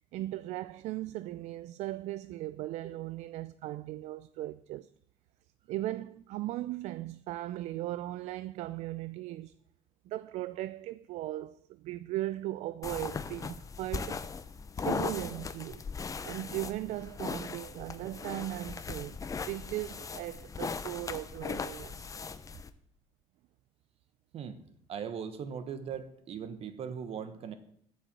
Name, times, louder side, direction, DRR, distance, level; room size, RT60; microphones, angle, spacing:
voice 1, 0.1-4.9 5.7-9.5 10.1-14.2 14.8-15.8 16.2-19.2 19.5-22.2, right 15 dB, 75° right, 0.4 m, -38 dB
sound 1, 12.8-22.7, left 5 dB, 30° left, 0.7 m, -38 dB
voice 2, 24.9-27.5, right 7 dB, 55° right, 1.3 m, -39 dB
9.3 x 8.0 x 7.5 m
cardioid pair, 110°, 12 cm